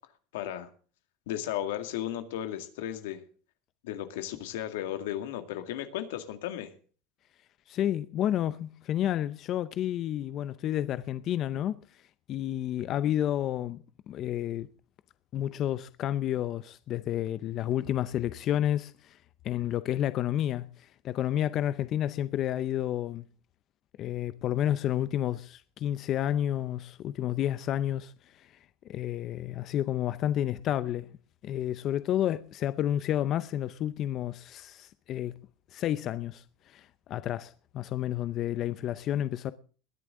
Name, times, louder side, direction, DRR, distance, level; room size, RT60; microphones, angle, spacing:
voice 1, 0.3-0.7 1.3-3.2 3.8-6.7, left 11 dB, 90° left, 2.1 m, -35 dB
voice 2, 7.7-12.0 12.3-14.7 15.3-19.2 19.4-23.3 24.0-28.6 28.9-31.1 31.4-35.3 35.7-39.5, left 11 dB, 40° left, 0.6 m, -30 dB
20.5 x 11.0 x 3.7 m
supercardioid pair, 140°, 0 cm